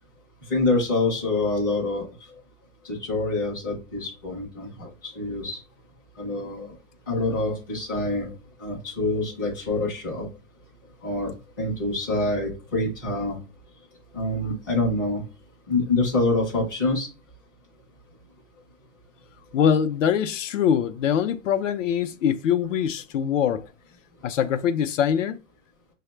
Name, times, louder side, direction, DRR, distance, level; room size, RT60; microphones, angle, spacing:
voice 1, 0.5-2.1 2.8-5.6 6.2-6.7 7.1-8.3 8.6-10.3 11.0-13.4 14.1-15.2 15.7-17.1, left 2 dB, 15° left, 0.4 m, -26 dB
voice 2, 19.5-23.7 24.2-25.4, left 8 dB, 70° left, 0.5 m, -23 dB
5.6 x 2.1 x 3.1 m
hypercardioid pair, 175°, 39 cm